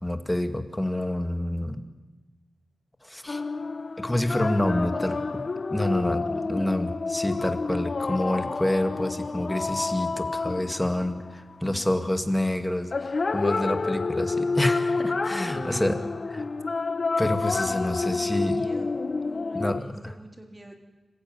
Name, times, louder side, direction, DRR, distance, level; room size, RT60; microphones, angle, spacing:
voice 1, 0.0-1.8 3.0-3.4 4.0-5.1 5.7-6.2 6.5-16.0 16.3-16.4 17.2-18.6 19.5-19.9, left 1 dB, 10° left, 7 dB, 2.1 m, -27 dB
sound 1, 3.3-11.5 12.9-19.8, left 3 dB, 45° left, 0.7 m, -29 dB
voice 2, 4.8-5.1 6.2-6.7 11.6-12.1 15.4-16.1 17.5-20.8, right 1 dB, 20° right, 3 dB, 3.6 m, -43 dB
26.5 x 15.5 x 9.3 m, 1.2 s
wide cardioid pair, 95°, 0 cm